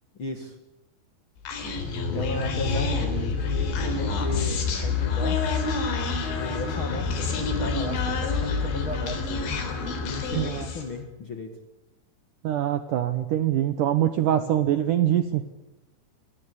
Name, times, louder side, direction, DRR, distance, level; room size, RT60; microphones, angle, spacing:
voice 1, 0.2-0.6 2.1-5.4 6.3-9.6 10.0-11.6 14.3-14.5, left 3 dB, 45° left, 6 dB, 1.8 m, -35 dB
Human voice, 1.5-10.9, left 4 dB, 90° left, 5.8 m, -27 dB
voice 2, 10.3-10.7 12.4-15.4, right 11 dB, 75° right, 11 dB, 2.0 m, -24 dB
26.0 x 18.5 x 8.6 m, 0.96 s
omnidirectional pair, 5.0 m